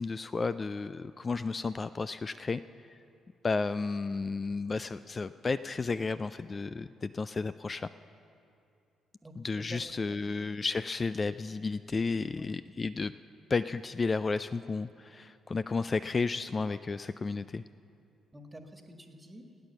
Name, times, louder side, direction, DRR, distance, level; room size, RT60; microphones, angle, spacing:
voice 1, 0.0-2.6 2.9-3.0 3.4-7.9 9.4-13.1 13.5-17.6, left 4 dB, 35° left, 14 dB, 0.3 m, -32 dB
voice 2, 9.2-9.8 10.1-10.4 12.4-12.6 18.3-19.4, right 1 dB, 20° right, 5 dB, 1.7 m, -49 dB
16.5 x 8.9 x 7.0 m, 2.6 s
hypercardioid pair, 45°, 0 cm